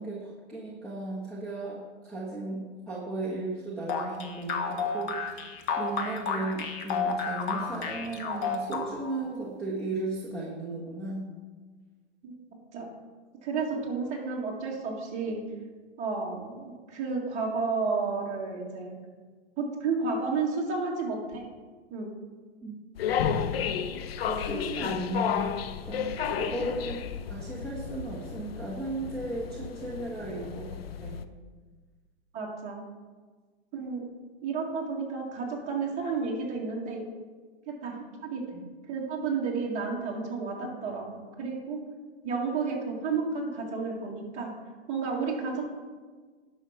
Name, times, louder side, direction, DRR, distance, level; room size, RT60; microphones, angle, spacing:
voice 1, 0.0-11.3 22.6-22.8 24.3-25.4 25.8-30.7 31.0-31.2, right 2 dB, ahead, -7 dB, 1.2 m, -35 dB
sound 1, 3.9-9.2, left 5 dB, 25° left, 1.1 m, -31 dB
voice 2, 13.4-15.4 16.0-19.0 19.6-21.4 21.9-22.1 26.6-26.7 32.3-32.8 33.7-34.0 34.4-37.0 37.7-38.6 38.9-41.0 41.4-41.8 42.2-44.5 44.9-45.7, right 4 dB, 20° right, -2 dB, 2.1 m, -31 dB
sound 2, 23.0-31.2, left 8 dB, 60° left, 0.7 m, -32 dB
10.5 x 6.4 x 5.8 m, 1.4 s
hypercardioid pair, 150°, 33 cm